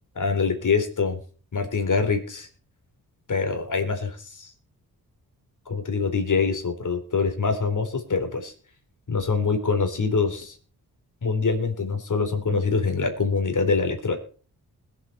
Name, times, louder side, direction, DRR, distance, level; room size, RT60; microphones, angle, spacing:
voice 1, 0.2-1.2 1.5-2.5 3.3-4.5 5.7-8.5 9.1-10.6 11.2-14.2, left 4 dB, 50° left, 5 dB, 4.0 m, -24 dB
21.0 x 8.2 x 4.2 m, 0.39 s
cardioid pair, 75°, 39 cm